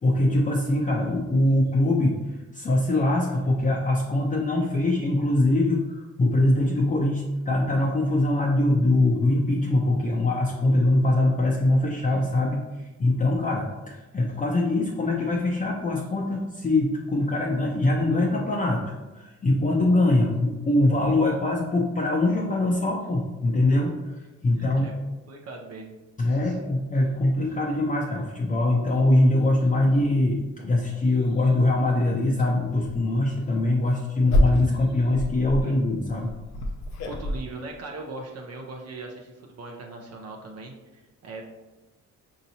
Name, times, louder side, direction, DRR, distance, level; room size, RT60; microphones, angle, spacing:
voice 1, 0.0-18.8 19.1-24.9 26.2-36.3, left 2 dB, 25° left, -2 dB, 0.6 m, -23 dB
voice 2, 24.6-24.9 25.3-26.0 26.3-26.6 37.1-41.4, right 3 dB, 55° right, 1 dB, 0.7 m, -40 dB
sound 1, 30.0-30.1 30.6-30.7 31.1-31.5 32.3-32.5 32.8-33.0 33.6-37.4, left 1 dB, 65° left, 0.7 m, -27 dB
5.3 x 2.8 x 2.7 m, 1.1 s
cardioid pair, 90°, 30 cm